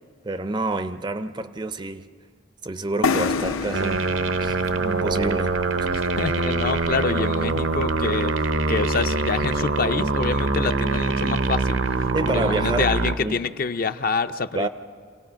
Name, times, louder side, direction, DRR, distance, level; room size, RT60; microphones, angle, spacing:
voice 1, 0.2-2.1 2.6-4.1 4.4-5.5 5.8-5.9 12.1-12.9 13.2-13.4 14.5-14.7, right 2 dB, 20° right, 0.5 m, -28 dB
sound 1, 3.0-6.7, left 4 dB, 85° left, 0.6 m, -29 dB
sound 2, 3.2-12.5, left 1 dB, 60° left, 0.9 m, -40 dB
sound 3, 3.7-13.1, right 3 dB, 70° right, 0.8 m, -24 dB
voice 2, 5.9-8.3 8.7-11.8 12.3-14.7, left 4 dB, 45° left, 0.5 m, -26 dB
27.0 x 18.0 x 5.7 m
head